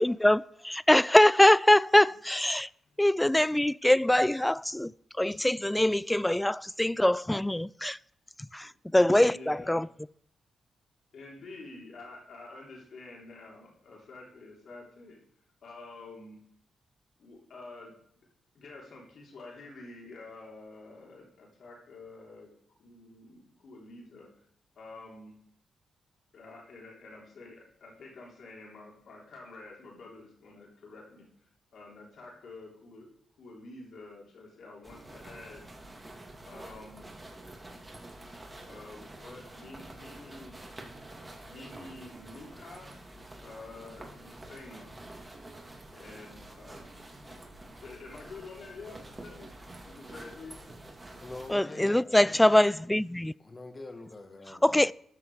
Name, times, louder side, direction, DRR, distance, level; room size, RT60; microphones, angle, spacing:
voice 1, 0.0-2.7 3.0-4.9 5.2-8.0 8.4-9.9 51.5-53.3 54.6-54.9, left 1 dB, 10° left, 0.3 m, -23 dB
voice 2, 9.1-9.8 11.1-15.2 15.6-16.4 17.2-18.3 18.5-22.5 22.8-24.3 24.7-25.3 26.3-31.2 31.7-33.1 33.4-35.7 36.4-37.1 38.6-40.5 41.5-42.9 43.4-44.9 45.9-46.8 47.8-49.5 49.8-50.6, left 3 dB, 70° left, 3.4 m, -48 dB
sound 1, 34.8-51.5, right 1 dB, 25° right, 2.6 m, -48 dB
voice 3, 51.2-52.2 53.4-54.7, left 2 dB, 35° left, 2.0 m, -44 dB
13.0 x 6.1 x 4.9 m
supercardioid pair, 50°, 0 cm